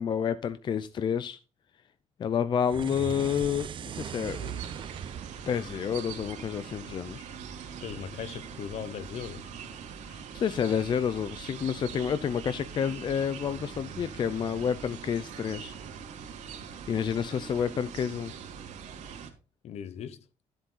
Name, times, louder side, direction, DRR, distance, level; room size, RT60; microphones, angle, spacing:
voice 1, 0.0-1.4 2.2-4.6 5.5-7.2 10.1-15.7 16.6-18.3, left 8 dB, 40° left, 0.6 m, -29 dB
sound 1, 2.6-7.0, right 9 dB, 40° right, 0.5 m, -40 dB
sound 2, 4.2-19.3, right 7 dB, 80° right, 2.9 m, -43 dB
voice 2, 7.8-9.5 19.6-20.2, left 8 dB, 60° left, 1.0 m, -38 dB
13.0 x 7.8 x 3.9 m
cardioid pair, 165°, 12 cm